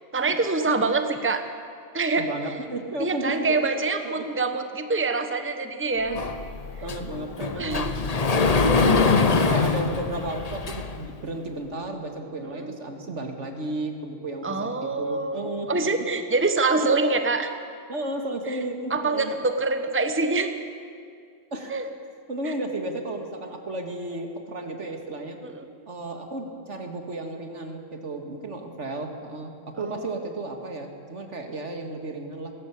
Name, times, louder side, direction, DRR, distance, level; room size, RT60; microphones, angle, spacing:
voice 1, 0.1-1.4 1.9-2.3 3.0-6.2 7.6-8.0 9.1-9.3 12.5-12.7 14.4-17.5 18.9-20.5 21.7-21.8 22.4-22.5 25.4-25.6 29.8-30.1, right 3 dB, 10° right, 8 dB, 1.0 m, -25 dB
voice 2, 2.1-3.6 4.0-4.3 5.9-6.2 6.8-7.6 8.8-16.1 16.8-16.9 17.9-19.3 21.5-21.8 22.3-25.4 25.9-32.5, right 2 dB, 80° right, 4 dB, 2.4 m, -33 dB
Sliding door, 6.2-11.1, left 4 dB, 35° left, 0.9 m, -23 dB
20.0 x 17.0 x 8.5 m, 2.3 s
omnidirectional pair, 1.2 m